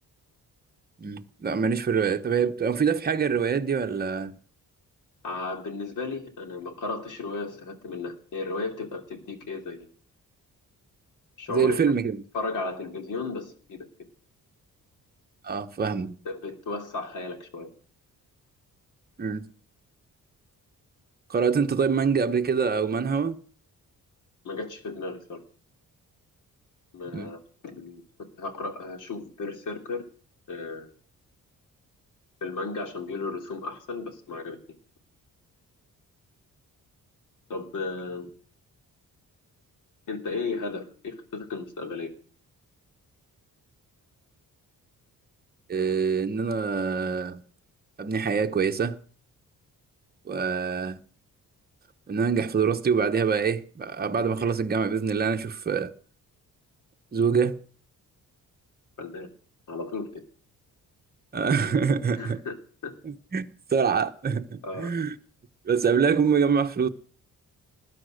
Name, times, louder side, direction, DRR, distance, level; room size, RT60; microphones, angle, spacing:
voice 1, 1.0-4.4 11.5-12.2 15.4-16.1 19.2-19.5 21.3-23.4 27.1-27.3 45.7-47.4 48.0-49.0 50.3-51.0 52.1-55.9 57.1-57.5 61.3-62.4 63.0-65.1 65.7-66.9, right 6 dB, 30° right, 1.0 m, -25 dB
voice 2, 5.2-9.9 11.4-11.8 12.3-13.9 16.2-17.7 24.4-25.4 26.9-28.0 28.4-30.0 30.5-30.9 32.4-34.6 37.5-38.3 40.1-42.1 59.0-59.3 59.7-60.1 62.1-62.5 62.8-62.9 64.6-64.9, left 3 dB, 65° left, 3.2 m, -34 dB
20.0 x 11.0 x 6.5 m
wide cardioid pair, 175°, 34 cm